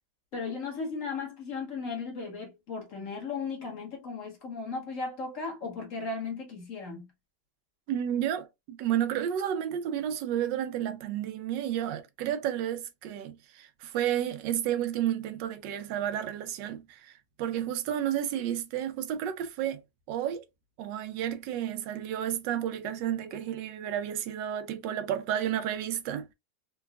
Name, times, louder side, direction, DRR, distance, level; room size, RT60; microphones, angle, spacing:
voice 1, 0.3-7.1, left 4 dB, 50° left, 1.2 m, -36 dB
voice 2, 7.9-19.8 20.1-20.4 20.8-26.3, right 10 dB, 85° right, 1.2 m, -31 dB
3.8 x 2.2 x 2.3 m
omnidirectional pair, 1.9 m